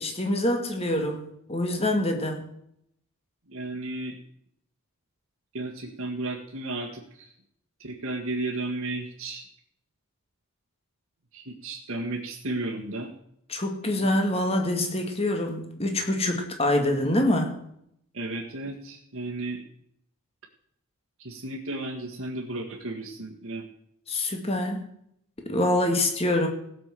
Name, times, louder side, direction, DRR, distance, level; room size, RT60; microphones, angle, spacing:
voice 1, 0.0-2.4 13.5-17.6 24.1-24.8 25.4-26.5, left 1 dB, 25° left, 4 dB, 2.0 m, -25 dB
voice 2, 3.5-4.2 5.5-7.3 7.8-9.5 11.3-13.1 18.1-19.6 21.2-23.7, right 2 dB, 75° right, -3 dB, 1.9 m, -33 dB
17.0 x 6.2 x 7.6 m, 0.74 s
head